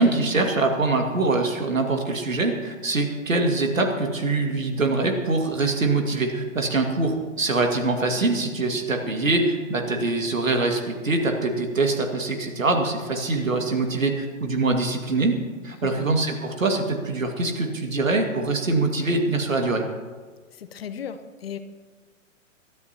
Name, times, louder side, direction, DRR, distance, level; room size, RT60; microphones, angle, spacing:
voice 1, 0.0-15.4 15.6-19.8, right 3 dB, 75° right, 3 dB, 2.2 m, -23 dB
voice 2, 20.6-21.6, left 8 dB, 50° left, 10 dB, 0.9 m, -35 dB
21.0 x 13.0 x 3.0 m, 1.4 s
figure-of-eight pair, 120°, 40 cm